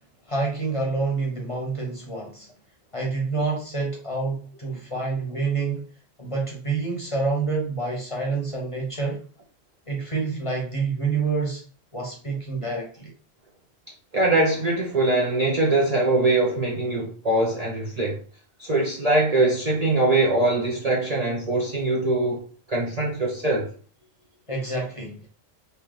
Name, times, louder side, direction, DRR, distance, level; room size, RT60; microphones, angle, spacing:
voice 1, 0.3-2.5 2.9-5.8 6.2-9.2 9.9-11.6 11.9-13.1 24.5-25.3, right 4 dB, 30° left, 0.9 m, -27 dB
voice 2, 14.1-18.2 18.6-22.4 22.7-23.7, right 2 dB, 40° right, 0.7 m, -22 dB
3.3 x 2.8 x 3.8 m
omnidirectional pair, 1.3 m